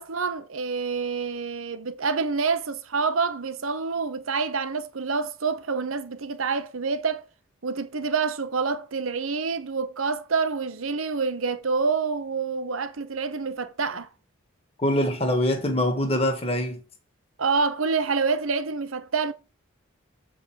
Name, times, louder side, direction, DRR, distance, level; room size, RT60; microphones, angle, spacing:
voice 1, 0.0-7.2 7.6-14.1 17.4-19.3, right 4 dB, 85° right, 0.9 m, -27 dB
voice 2, 14.8-16.8, left 1 dB, 30° left, 1.6 m, -24 dB
7.7 x 5.1 x 4.5 m
head